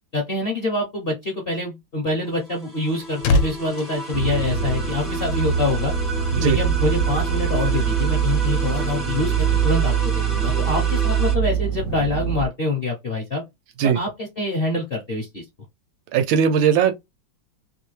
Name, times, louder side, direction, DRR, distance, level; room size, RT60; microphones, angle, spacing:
voice 1, 0.1-5.9 6.4-13.4 13.8-15.4, left 2 dB, 55° left, 0.6 m, -26 dB
sound 1, 2.3-11.4, right 1 dB, ahead, 0.5 m, -33 dB
sound 2, 2.5-5.2 5.4-5.7, left 2 dB, 70° left, 1.3 m, -26 dB
sound 3, 4.1-12.5, right 8 dB, 65° right, 0.9 m, -23 dB
voice 2, 16.1-17.0, right 8 dB, 80° right, 1.4 m, -18 dB
3.3 x 2.7 x 3.1 m
omnidirectional pair, 2.1 m